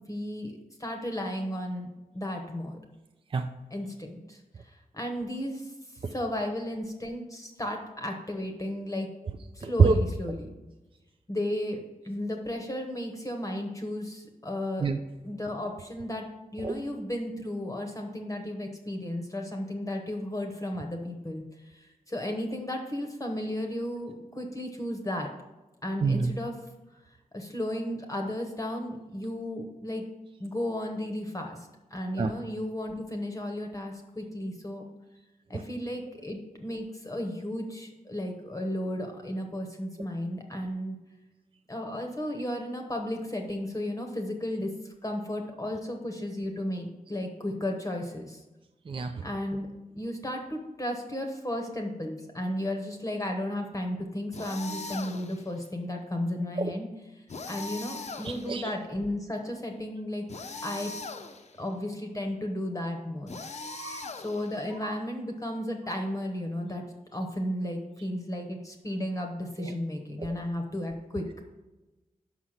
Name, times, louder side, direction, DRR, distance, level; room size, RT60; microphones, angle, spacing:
voice 1, 0.1-1.9 2.1-2.8 3.7-4.4 4.9-5.7 6.1-9.1 9.5-10.5 11.3-11.8 12.0-14.9 15.2-21.4 21.7-25.3 25.8-26.6 27.3-30.1 30.4-34.8 35.5-41.0 41.7-48.4 49.2-60.3 60.6-60.9 61.6-63.4 64.1-66.8 67.1-71.3, left 1 dB, 20° left, 3 dB, 0.9 m, -34 dB
voice 2, 9.6-9.9 14.8-15.0 16.6-16.7 26.0-26.3 32.2-32.3 48.9-49.2 56.6-56.7 58.2-58.7 63.7-64.1 64.8-64.9 69.6-69.7 70.2-70.3, right 5 dB, 35° right, 6 dB, 0.4 m, -26 dB
sound 1, 54.3-55.5 57.3-58.7 60.3-61.6 63.3-64.7, left 3 dB, 50° left, 0.6 m, -40 dB
5.8 x 5.5 x 6.4 m, 1.1 s
wide cardioid pair, 140°, 15 cm